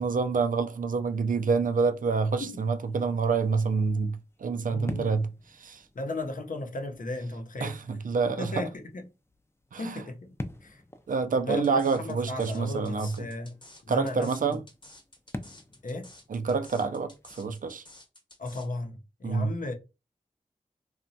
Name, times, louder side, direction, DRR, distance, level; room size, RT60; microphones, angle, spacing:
voice 1, 0.0-5.3 5.5-5.8 7.6-8.6 9.7-10.0 11.1-13.1 13.9-14.6 16.3-17.1 17.4-17.8 19.2-19.5, right 4 dB, 65° right, 0.4 m, -27 dB
sound 1, 1.0-17.5, left 1 dB, 15° left, 0.4 m, -47 dB
voice 2, 4.7-5.2 5.9-7.8 8.2-9.0 9.8-10.3 10.6-10.8 11.4-13.6 13.8-14.6 15.8-16.1 18.4-19.7, left 2 dB, 65° left, 0.6 m, -35 dB
sound 2, 11.6-18.7, left 1 dB, 35° left, 1.0 m, -52 dB
2.9 x 2.2 x 2.6 m
cardioid pair, 45°, 15 cm